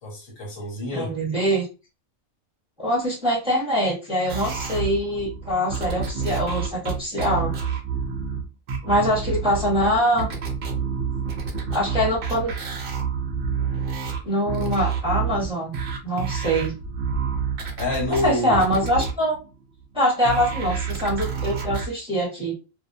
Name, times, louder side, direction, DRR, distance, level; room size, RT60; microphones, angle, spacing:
voice 1, 0.0-1.1 8.8-9.0 17.8-18.6, left 2 dB, 80° left, 1 dB, 1.4 m, -28 dB
voice 2, 0.9-1.7 2.8-7.5 8.9-10.3 11.7-12.5 14.2-15.7 16.0-16.7 18.1-19.3 19.9-22.5, equal, 5° right, -4 dB, 0.8 m, -23 dB
sound 1, 4.3-19.8 20.2-21.9, right 6 dB, 60° right, 0.6 m, -28 dB
2.5 x 2.0 x 2.5 m, 0.30 s
omnidirectional pair, 1.4 m